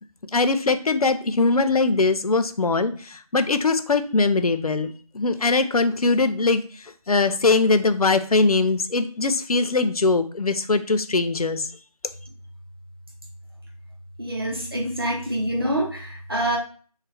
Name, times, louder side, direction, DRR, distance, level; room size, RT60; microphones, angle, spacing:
voice 1, 0.3-11.7, left 3 dB, 75° left, 10 dB, 0.4 m, -21 dB
voice 2, 14.2-16.6, right 1 dB, 40° right, -1 dB, 0.7 m, -26 dB
3.2 x 2.4 x 3.2 m, 0.41 s
figure-of-eight pair, 170°, 19 cm